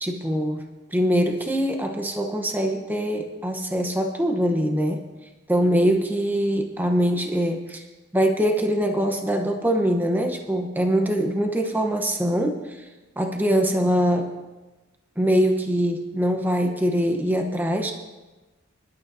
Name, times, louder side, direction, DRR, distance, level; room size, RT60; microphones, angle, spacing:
voice 1, 0.0-5.0 5.5-7.8 8.1-12.9 13.2-14.3 15.2-17.9, equal, 10° right, 3 dB, 0.9 m, -23 dB
24.5 x 11.5 x 2.7 m, 1.2 s
head